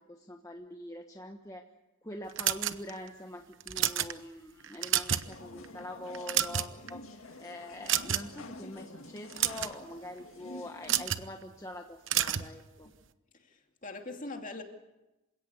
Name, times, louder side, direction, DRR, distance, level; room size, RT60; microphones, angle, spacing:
voice 1, 0.1-1.6 2.0-12.9, left 1 dB, 15° left, 3 dB, 1.3 m, -44 dB
sound 1, 2.4-3.1 3.6-4.1 4.6-5.3 5.6-5.8 6.1-6.9 7.9-8.4 9.2-9.7 10.8-11.3 12.1-12.5, right 11 dB, 65° right, 1.0 m, -29 dB
sound 2, 5.2-11.0, left 2 dB, 80° left, 1.9 m, -48 dB
voice 2, 13.3-14.6, left 2 dB, 40° left, 3 dB, 2.7 m, -42 dB
28.0 x 17.0 x 8.3 m, 1.0 s
head